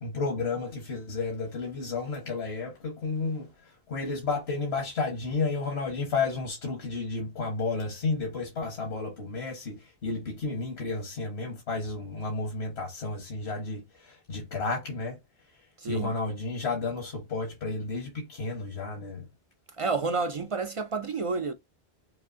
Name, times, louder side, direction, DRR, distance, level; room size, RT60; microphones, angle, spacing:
voice 1, 0.0-15.2 15.9-19.3, left 3 dB, 80° left, 1.6 m, -32 dB
voice 2, 15.8-16.1 19.8-21.5, right 4 dB, 50° right, 0.4 m, -30 dB
5.9 x 2.5 x 2.6 m
omnidirectional pair, 1.0 m